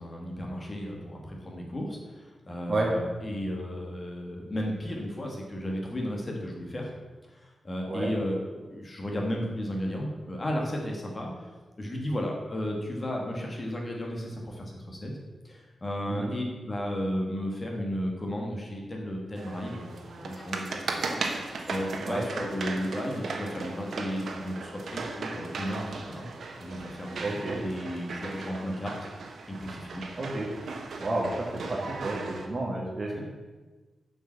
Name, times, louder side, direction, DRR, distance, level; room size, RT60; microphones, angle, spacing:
voice 1, 0.0-6.9 7.3-11.3 11.8-15.1 15.5-21.2 21.7-26.3 26.6-29.0 29.5-30.0, equal, 25° left, 0 dB, 1.7 m, -34 dB
sound 1, 19.4-32.5, right 3 dB, 70° right, 1.1 m, -37 dB
voice 2, 27.2-27.6 30.2-30.5 31.0-33.2, right 2 dB, 35° right, -2 dB, 1.6 m, -31 dB
7.7 x 5.4 x 7.4 m, 1.3 s
wide cardioid pair, 170°, 0 cm